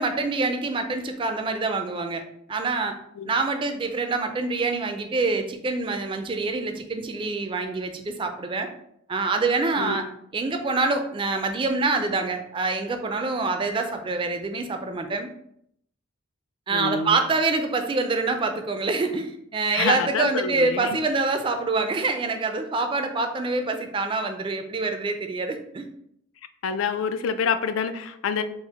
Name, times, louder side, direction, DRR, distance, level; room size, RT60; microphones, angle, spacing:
voice 1, 0.0-2.2 2.5-3.0 3.3-8.7 9.1-10.1 10.3-15.3 16.7-25.9, right 3 dB, 25° right, 6 dB, 0.3 m, -26 dB
voice 2, 16.7-17.2 19.7-21.0 26.6-28.4, left 6 dB, 80° left, 10 dB, 0.3 m, -27 dB
4.2 x 2.1 x 3.5 m, 0.72 s
head